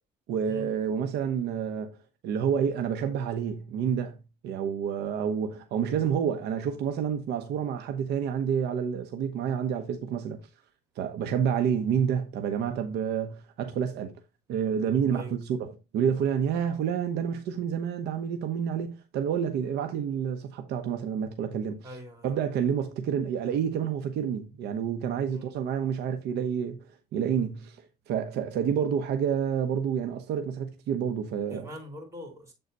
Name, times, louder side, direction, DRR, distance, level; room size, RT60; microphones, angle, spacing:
voice 1, 0.3-2.0 2.2-4.2 4.4-10.4 11.0-14.2 14.5-22.0 22.2-26.8 27.1-27.8 28.1-31.7, right 8 dB, 75° right, 1.0 m, -29 dB
voice 2, 21.8-22.3 25.3-25.5 31.5-32.5, equal, 15° right, 3.5 m, -42 dB
7.9 x 4.0 x 4.0 m
cardioid pair, 110°, 17 cm